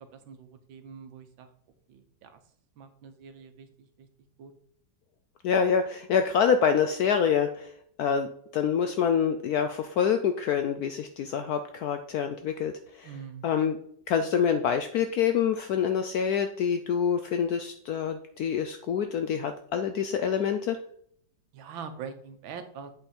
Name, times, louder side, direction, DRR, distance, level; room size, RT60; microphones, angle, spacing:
voice 1, 0.0-1.5 1.9-2.4 2.8-4.1 4.4-4.5 13.0-13.5 21.5-22.9, right 6 dB, 85° right, 8 dB, 1.6 m, -44 dB
voice 2, 5.4-7.7 8.0-13.1 13.4-13.8 14.1-20.8, left 7 dB, 75° left, 7 dB, 0.8 m, -26 dB
7.9 x 4.0 x 4.3 m, 0.66 s
omnidirectional pair, 2.1 m